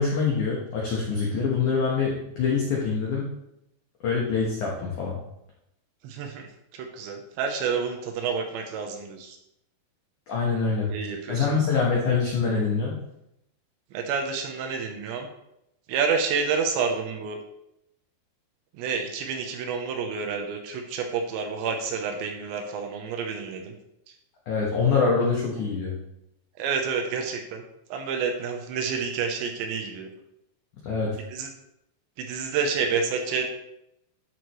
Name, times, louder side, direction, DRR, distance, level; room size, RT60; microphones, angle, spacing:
voice 1, 0.0-3.3 4.0-5.2 10.3-10.9 11.3-12.9 24.5-25.9 30.8-31.2, left 5 dB, 80° left, -3 dB, 1.7 m, -25 dB
voice 2, 6.0-6.5 6.7-9.4 10.9-11.7 13.9-15.3 15.9-17.4 18.7-23.7 26.6-27.6 27.9-30.1 31.3-31.5 32.2-33.5, right 5 dB, 75° right, 4 dB, 2.9 m, -29 dB
12.5 x 6.5 x 3.1 m, 0.82 s
omnidirectional pair, 5.6 m